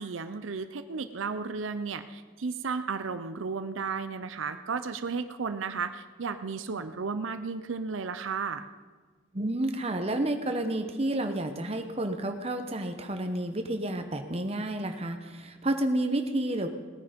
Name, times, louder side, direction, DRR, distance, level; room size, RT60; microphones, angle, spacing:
voice 1, 0.0-8.6, right 5 dB, 80° right, 10 dB, 0.6 m, -34 dB
voice 2, 9.3-16.7, right 1 dB, 30° right, 6 dB, 1.0 m, -30 dB
18.0 x 9.6 x 5.2 m, 1.4 s
head